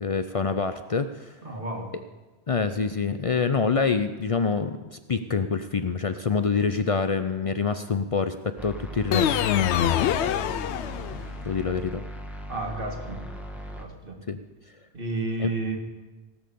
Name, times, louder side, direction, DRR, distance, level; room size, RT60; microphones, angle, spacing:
voice 1, 0.0-1.3 2.5-9.4 11.4-12.0 14.3-14.4 15.4-15.5, left 5 dB, 45° left, 10 dB, 0.4 m, -26 dB
voice 2, 1.4-1.9 12.5-13.2 13.8-14.2 14.9-15.8, right 3 dB, 55° right, 3 dB, 1.9 m, -31 dB
sound 1, 8.6-13.8, right 1 dB, ahead, 1.3 m, -38 dB
sound 2, 9.1-11.4, left 10 dB, 85° left, 0.9 m, -24 dB
17.5 x 6.6 x 6.8 m, 1.2 s
omnidirectional pair, 1.1 m